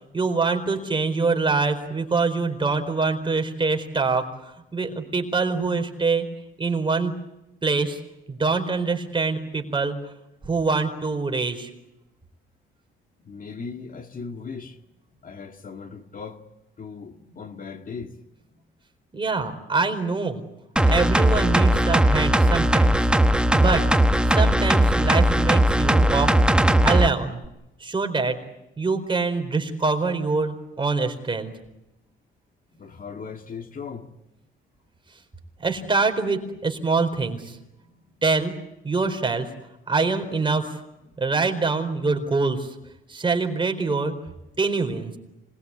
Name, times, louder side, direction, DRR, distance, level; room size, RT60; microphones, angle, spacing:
voice 1, 0.1-4.3 4.7-6.3 6.6-7.2 7.6-8.0 8.3-10.0 10.4-11.7 19.1-20.4 20.9-23.1 23.5-23.8 24.2-26.3 26.8-27.4 27.8-28.4 28.8-31.5 35.6-37.6 38.2-38.6 38.8-39.5 39.9-40.8 41.2-42.7 43.1-44.1 44.6-45.1, right 4 dB, 25° right, 4.4 m, -24 dB
voice 2, 13.2-14.8 15.2-16.4 16.8-18.2 32.7-34.1 37.8-37.9 41.1-41.2 44.5-44.6, left 5 dB, 45° left, 2.1 m, -38 dB
sound 1, 20.8-27.1 27.4-27.5, right 1 dB, 5° right, 1.2 m, -18 dB
26.0 x 21.5 x 8.5 m
cardioid pair, 90°, 20 cm